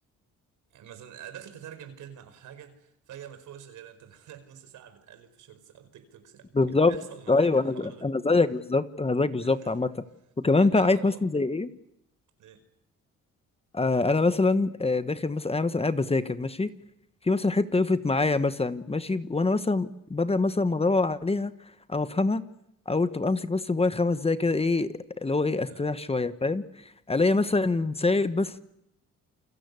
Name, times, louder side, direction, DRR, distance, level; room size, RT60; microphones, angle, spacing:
voice 1, 0.7-8.1 9.4-9.7 10.5-11.2 12.4-12.6 25.7-25.9, right 9 dB, 80° right, 4.9 m, -47 dB
voice 2, 6.5-6.9 7.3-9.9 10.4-11.7 13.7-16.7 17.2-21.5 21.9-22.4 22.9-26.6 27.1-28.6, left 3 dB, 20° left, 1.3 m, -25 dB
29.0 x 23.0 x 8.3 m
cardioid pair, 90°, 30 cm